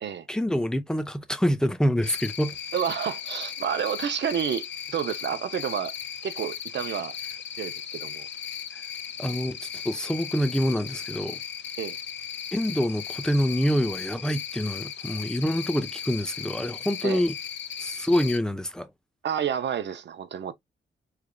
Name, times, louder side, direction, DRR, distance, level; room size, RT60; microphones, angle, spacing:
voice 1, 0.3-2.6 8.7-8.8 9.2-11.4 12.5-17.4 17.8-18.9, equal, 5° left, 0.6 m, -26 dB
Cricket, 2.0-18.4, left 8 dB, 75° left, 0.5 m, -37 dB
voice 2, 2.7-5.9 6.2-7.1 7.5-8.3 11.8-12.0 17.0-17.2 19.2-20.5, right 8 dB, 70° right, 0.6 m, -30 dB
3.6 x 3.3 x 2.3 m
cardioid pair, 75°, 19 cm